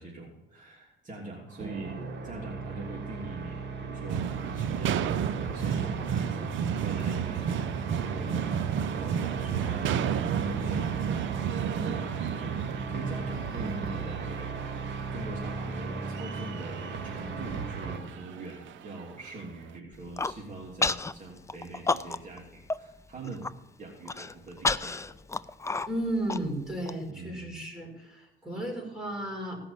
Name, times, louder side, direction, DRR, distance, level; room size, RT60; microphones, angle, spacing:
voice 1, 0.0-14.7 15.1-23.5 23.8-25.2 27.1-27.6, right 2 dB, 40° right, -3 dB, 3.1 m, -42 dB
sound 1, 1.5-18.0, right 4 dB, 60° right, 2.2 m, -36 dB
sound 2, 4.1-19.4, right 9 dB, 75° right, 0.7 m, -33 dB
Human voice, 19.9-20.4 20.8-21.1 21.5-22.4 22.7-22.8 23.2-23.5 24.0-26.9, left 3 dB, 15° left, 0.4 m, -30 dB
voice 2, 25.9-29.6, right 1 dB, 5° right, -1 dB, 5.4 m, -34 dB
16.5 x 5.9 x 8.8 m, 0.97 s
cardioid pair, 90°, 20 cm